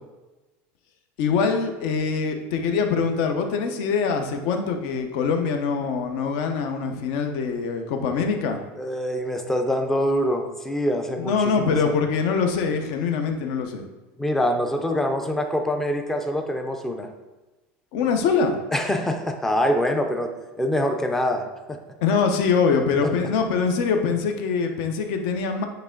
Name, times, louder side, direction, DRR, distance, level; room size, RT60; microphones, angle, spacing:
voice 1, 1.2-8.6 11.2-13.8 17.9-18.6 22.0-25.7, left 5 dB, 60° left, 5 dB, 0.8 m, -23 dB
voice 2, 8.8-12.0 14.2-17.1 18.7-21.8 23.0-23.1, equal, 5° left, 5 dB, 0.5 m, -25 dB
8.8 x 3.4 x 3.8 m, 1.1 s
cardioid pair, 165°, 6 cm